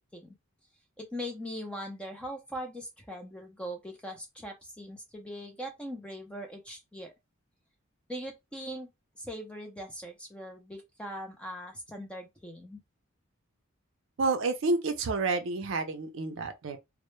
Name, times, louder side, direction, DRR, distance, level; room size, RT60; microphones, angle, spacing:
voice 1, 1.0-7.1 8.1-8.9 9.2-12.8, equal, 5° left, 0.4 m, -40 dB
voice 2, 14.2-16.8, right 3 dB, 60° right, 0.4 m, -29 dB
2.0 x 2.0 x 3.0 m
head